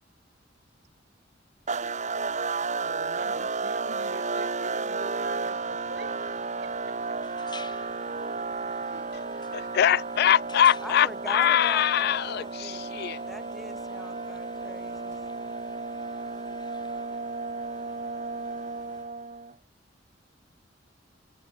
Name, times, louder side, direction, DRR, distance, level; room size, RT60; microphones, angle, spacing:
sound 1, 1.7-19.5, right 4 dB, 40° right, 2.2 m, -33 dB
voice 1, 1.7-2.0 2.8-6.2 6.6-7.0 8.9-9.2, right 2 dB, 65° right, 4.3 m, -44 dB
sound 2, 5.2-19.0, left 4 dB, 25° left, 4.2 m, -53 dB
voice 2, 9.5-13.2, left 10 dB, 60° left, 0.4 m, -23 dB
voice 3, 10.8-12.9 13.2-15.2, equal, ahead, 1.0 m, -42 dB
head